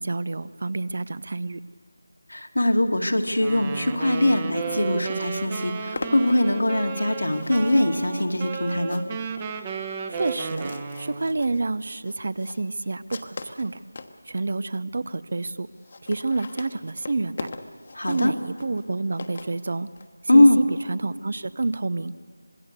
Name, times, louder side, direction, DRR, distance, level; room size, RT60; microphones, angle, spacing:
voice 1, 0.0-1.6 10.1-13.8 14.3-15.7 16.0-17.5 18.1-19.9 20.3-22.1, right 3 dB, 50° right, 17 dB, 0.7 m, -28 dB
voice 2, 2.3-9.0 17.9-18.3 20.3-20.6, left 1 dB, 85° left, 3 dB, 2.2 m, -21 dB
Wind instrument woodwind instrument, 3.3-11.3, right 5 dB, 20° right, 1.0 m, -33 dB
sound 1, 6.0-14.2 14.8-14.9 15.1-15.2 15.4-15.5 15.7-20.1, left 3 dB, 45° left, 1.2 m, -41 dB
26.0 x 20.5 x 6.7 m, 2.1 s
figure-of-eight pair, 165°, 0 cm